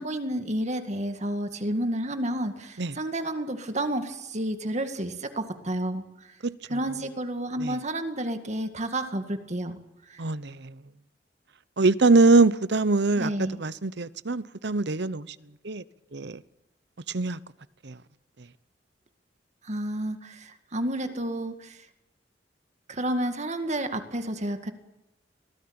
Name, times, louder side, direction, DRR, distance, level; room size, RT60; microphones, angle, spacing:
voice 1, 0.0-6.4 6.7-10.2 13.2-13.6 19.6-21.9 22.9-24.7, right 1 dB, 40° right, 2.0 m, -31 dB
voice 2, 10.2-10.7 11.8-15.3 15.6-15.8 16.1-16.4 17.1-17.4 17.8-18.0, right 3 dB, 65° right, 0.9 m, -23 dB
24.5 x 18.5 x 8.9 m
head